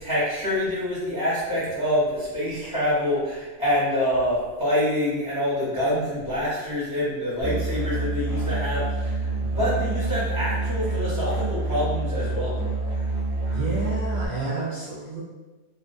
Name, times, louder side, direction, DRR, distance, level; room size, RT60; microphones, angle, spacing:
voice 1, 0.0-12.5, left 1 dB, 25° left, -9 dB, 0.6 m, -26 dB
Musical instrument, 7.4-14.3, right 2 dB, 35° right, 0.7 m, -27 dB
voice 2, 13.5-15.2, right 3 dB, 70° right, -6 dB, 0.4 m, -30 dB
2.4 x 2.1 x 2.5 m, 1.2 s
omnidirectional pair, 1.3 m